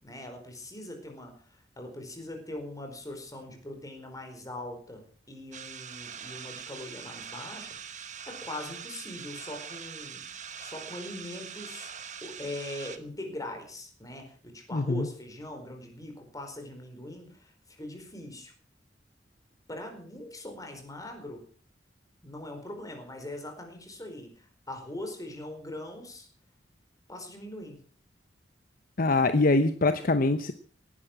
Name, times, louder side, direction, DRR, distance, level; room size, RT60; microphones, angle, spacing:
voice 1, 0.0-8.0 8.3-10.3 10.6-11.9 12.2-18.5 19.7-21.5 22.2-26.3 27.1-27.8, left 1 dB, 20° left, 4 dB, 4.7 m, -41 dB
sound 1, 5.5-13.0, right 7 dB, 45° right, 1.3 m, -43 dB
voice 2, 14.7-15.1 29.0-30.5, left 2 dB, 50° left, 10 dB, 0.9 m, -24 dB
18.0 x 11.0 x 6.1 m, 0.43 s
head